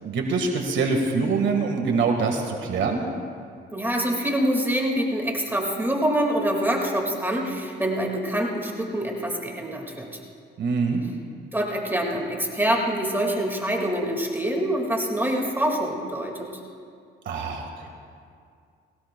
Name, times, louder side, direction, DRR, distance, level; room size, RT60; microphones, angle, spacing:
voice 1, 0.0-3.1 10.6-11.0 17.2-17.9, right 4 dB, 70° right, 2 dB, 1.7 m, -24 dB
voice 2, 3.7-10.2 11.5-16.5, right 1 dB, 10° right, 0 dB, 2.0 m, -25 dB
20.5 x 18.0 x 2.3 m, 2.2 s
cardioid pair, 90°, 20 cm